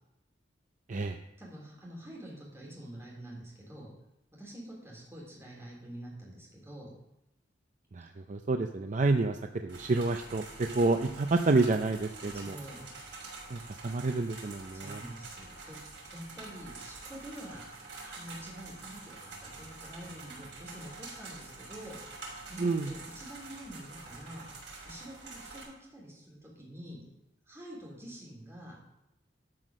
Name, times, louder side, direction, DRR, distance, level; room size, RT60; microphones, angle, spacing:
voice 1, 1.4-3.9 4.4-6.9 12.3-12.8 14.7-17.6 18.0-22.0 22.5-24.4 24.8-27.0 27.5-28.8, right 1 dB, 15° right, -4 dB, 3.7 m, -47 dB
voice 2, 7.9-12.6 13.5-15.0 22.6-22.9, right 3 dB, 45° right, 6 dB, 0.5 m, -29 dB
sound 1, 9.7-25.6, right 3 dB, 80° right, 4.9 m, -47 dB
12.5 x 5.9 x 6.2 m, 0.87 s
head